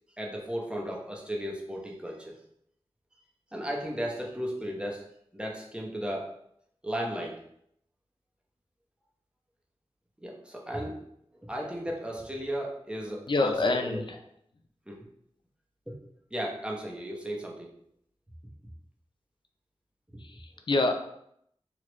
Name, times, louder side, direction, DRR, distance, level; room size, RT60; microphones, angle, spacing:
voice 1, 0.2-2.4 3.5-5.1 5.3-6.3 6.8-7.4 10.2-11.0 11.4-14.0 14.9-15.1 15.9-16.0 16.3-17.7, equal, 10° right, -2 dB, 0.8 m, -35 dB
voice 2, 13.3-14.2 20.2-20.9, left 2 dB, 50° left, 5 dB, 0.4 m, -27 dB
3.2 x 2.4 x 3.0 m, 0.73 s
cardioid pair, 40°, 11 cm